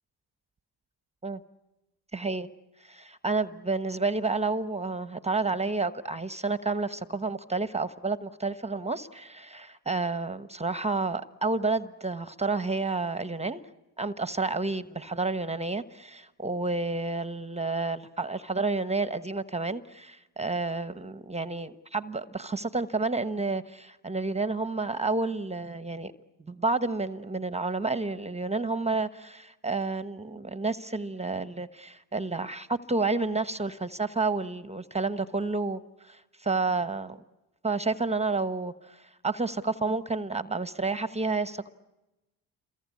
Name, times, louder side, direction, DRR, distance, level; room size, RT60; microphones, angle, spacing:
voice 1, 2.1-2.5 2.8-13.6 14.0-26.1 26.5-37.2 37.6-41.7, right 3 dB, 15° right, 13 dB, 1.1 m, -30 dB
28.5 x 23.0 x 8.6 m, 1.0 s
supercardioid pair, 75°, 42 cm